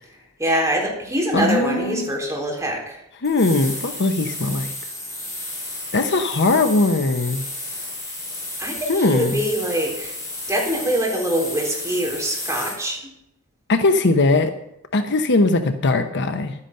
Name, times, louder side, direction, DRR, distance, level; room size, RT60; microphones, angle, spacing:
voice 1, 0.4-3.0 8.6-10.1 10.5-13.0, equal, 15° right, -1 dB, 3.8 m, -24 dB
voice 2, 1.3-2.1 3.2-4.7 5.9-7.4 8.9-9.4 13.7-14.5 14.9-16.5, left 2 dB, 55° left, 8 dB, 0.9 m, -20 dB
sound 1, 3.2-12.9, left 2 dB, 15° left, 6.5 m, -32 dB
12.0 x 9.8 x 6.6 m, 0.78 s
head